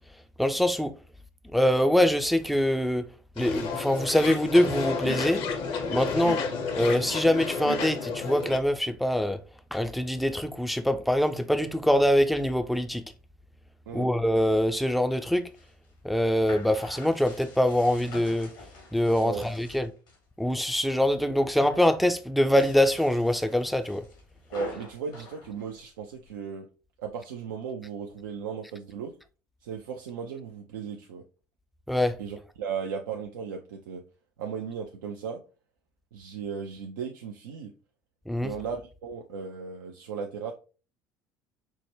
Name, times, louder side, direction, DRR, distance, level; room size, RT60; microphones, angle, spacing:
voice 1, 0.4-0.9 1.5-3.1 3.4-5.4 5.9-6.4 6.8-9.4 9.7-13.0 13.9-15.4 16.0-18.5 18.9-19.9 20.4-24.0 31.9-32.1 38.3-38.5, left 1 dB, ahead, 0.4 m, -24 dB
sound 1, 3.4-8.6, left 5 dB, 55° left, 0.7 m, -31 dB
sound 2, 15.3-20.2 20.6-21.2 21.4-21.9 22.4-26.3, left 3 dB, 80° left, 1.3 m, -47 dB
voice 2, 24.5-26.7 27.0-29.1 29.6-31.2 32.2-34.0 34.4-35.4 36.1-37.7 38.4-40.5, right 6 dB, 75° right, 0.4 m, -36 dB
4.4 x 2.1 x 3.1 m
hypercardioid pair, 65°, 11 cm